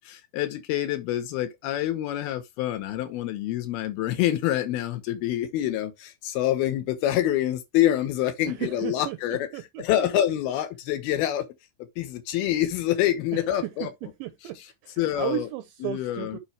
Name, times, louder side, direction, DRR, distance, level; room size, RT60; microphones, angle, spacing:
voice 1, 0.0-9.5 9.8-11.5 12.0-13.9 14.6-14.7 15.0-15.5 15.8-16.4, left 12 dB, 75° left, 2.3 m, -26 dB
voice 2, 8.6-9.2 9.5-9.6 13.5-14.6 14.8-16.4, right 15 dB, 80° right, 2.9 m, -34 dB
8.7 x 4.9 x 3.2 m
omnidirectional pair, 5.6 m